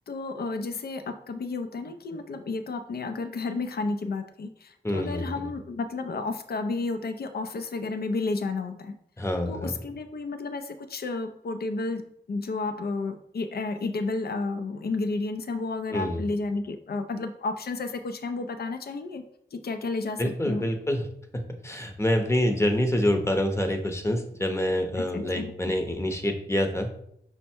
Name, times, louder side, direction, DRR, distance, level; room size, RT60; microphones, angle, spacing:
voice 1, 0.1-8.9 9.5-12.0 12.3-19.2 19.5-20.7 25.0-25.5, left 3 dB, 65° left, 8 dB, 0.5 m, -32 dB
voice 2, 4.8-5.5 9.2-9.7 15.9-16.2 20.2-21.1 21.3-26.9, left 1 dB, 15° left, 5 dB, 0.8 m, -26 dB
5.2 x 2.2 x 4.4 m, 0.73 s
cardioid pair, 55°, 18 cm